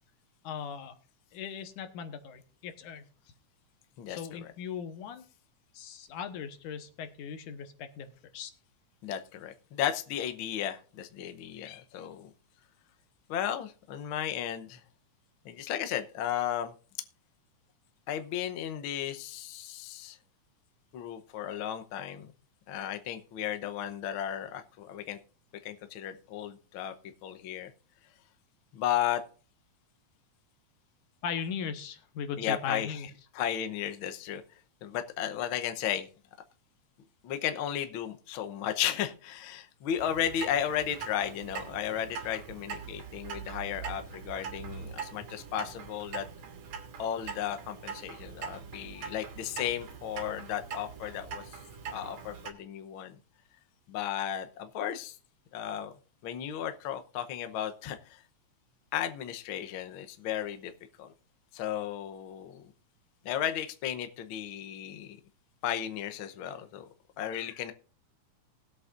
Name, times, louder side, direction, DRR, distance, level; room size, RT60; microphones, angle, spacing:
voice 1, 0.4-0.9 1.3-3.0 4.1-5.2 5.7-8.5 31.2-33.1, left 7 dB, 90° left, 8 dB, 2.6 m, -38 dB
voice 2, 4.0-4.5 9.0-12.3 13.3-14.8 15.4-16.7 18.1-20.2 20.9-22.3 22.7-25.2 25.6-26.9 27.2-27.7 28.7-29.2 32.4-34.4 34.8-36.1 37.2-46.3 47.0-51.6 51.9-53.2 53.9-55.2 55.5-55.9 56.2-58.2 58.9-60.7 61.0-61.1 61.5-62.7 63.2-65.2 65.6-66.8 67.2-67.7, left 10 dB, 70° left, 8 dB, 1.2 m, -34 dB
Clock, 40.0-52.5, right 6 dB, 65° right, 2.9 m, -42 dB
20.0 x 8.0 x 2.5 m, 0.41 s
omnidirectional pair, 3.5 m